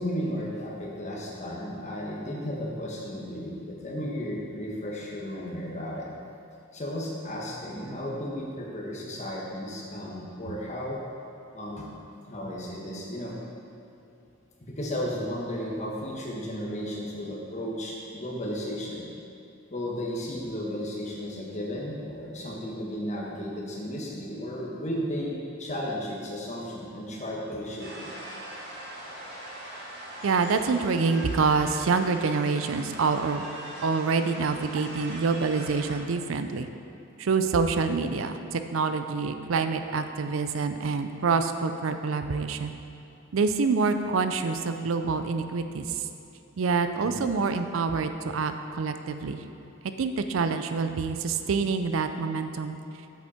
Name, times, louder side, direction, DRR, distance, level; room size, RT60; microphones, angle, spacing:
voice 1, 0.0-6.1 6.7-11.0 11.5-11.9 12.3-13.4 14.6-19.0 19.7-28.1 47.0-47.3, equal, 35° left, -3 dB, 1.4 m, -34 dB
sound 1, 27.8-36.0, right 1 dB, 55° right, 2.0 m, -41 dB
voice 2, 30.2-33.5 33.8-36.7 37.2-42.7 43.3-46.1 46.6-49.4 50.0-52.8, right 4 dB, 75° right, 8 dB, 0.5 m, -26 dB
7.8 x 7.3 x 4.3 m, 2.6 s
head